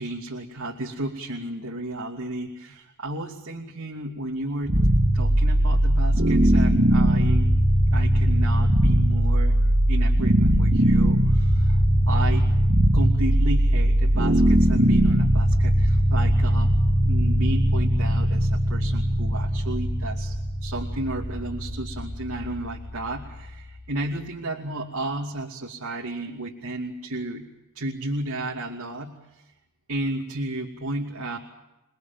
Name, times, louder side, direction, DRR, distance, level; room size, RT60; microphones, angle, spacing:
voice 1, 0.0-4.9 5.1-7.5 7.9-9.6 9.9-12.5 12.9-27.5 27.7-29.4 29.9-31.4, right 1 dB, 80° right, -1 dB, 2.8 m, -33 dB
sound 1, 4.7-23.7, right 1 dB, 50° right, 2.7 m, -20 dB
29.0 x 21.5 x 7.4 m, 0.95 s
head